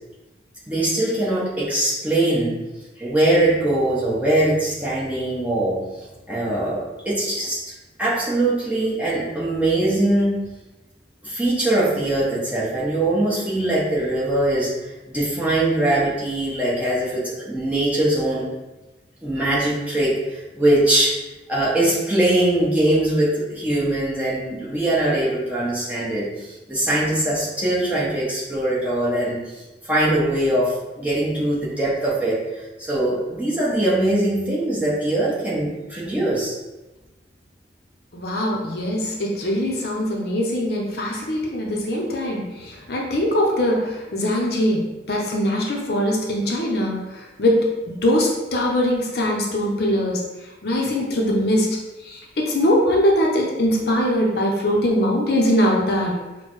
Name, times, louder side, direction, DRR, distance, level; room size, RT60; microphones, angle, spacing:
voice 1, 0.7-2.6 3.0-5.8 6.3-10.4 11.2-18.5 19.2-21.2 21.5-36.6, right 1 dB, 10° right, -8 dB, 0.9 m, -22 dB
voice 2, 38.1-50.2 50.6-51.8 52.0-56.2, equal, 55° left, -1 dB, 0.6 m, -22 dB
6.3 x 2.2 x 3.1 m, 1.1 s
head